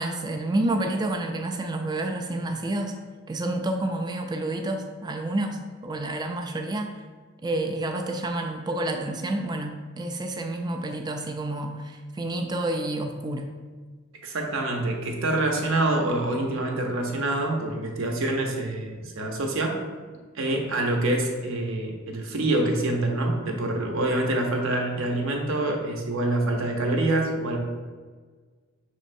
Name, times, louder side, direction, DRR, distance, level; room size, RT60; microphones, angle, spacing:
voice 1, 0.0-3.0 3.3-6.9 7.4-13.6, right 1 dB, 20° right, 4 dB, 0.3 m, -29 dB
voice 2, 14.2-19.8 20.3-27.6, right 2 dB, 70° right, 2 dB, 0.7 m, -26 dB
6.4 x 3.1 x 2.6 m, 1.5 s
head